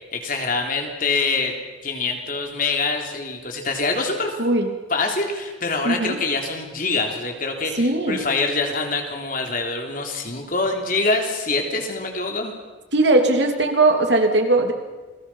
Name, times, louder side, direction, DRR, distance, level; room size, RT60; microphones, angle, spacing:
voice 1, 0.1-1.5 1.8-4.4 4.9-12.5, left 3 dB, 45° left, 3 dB, 3.5 m, -25 dB
voice 2, 5.8-6.2 7.8-8.2 12.9-14.7, right 2 dB, 65° right, 4 dB, 3.1 m, -19 dB
29.0 x 21.0 x 5.8 m, 1.3 s
head